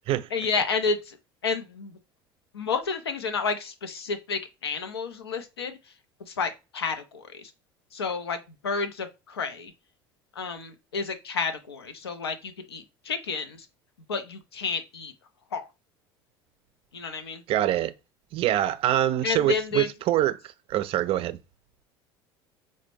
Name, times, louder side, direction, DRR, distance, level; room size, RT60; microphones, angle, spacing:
voice 1, 0.3-1.2 1.4-2.0 2.5-5.8 6.3-7.5 7.9-9.7 10.4-13.7 14.1-15.1 15.5-15.7 16.9-17.4 19.2-19.9, left 5 dB, 90° left, 0.5 m, -30 dB
voice 2, 17.5-17.9 18.3-20.4 20.7-21.4, right 13 dB, 45° right, 0.3 m, -24 dB
4.1 x 2.1 x 3.0 m
hypercardioid pair, 75°, 13 cm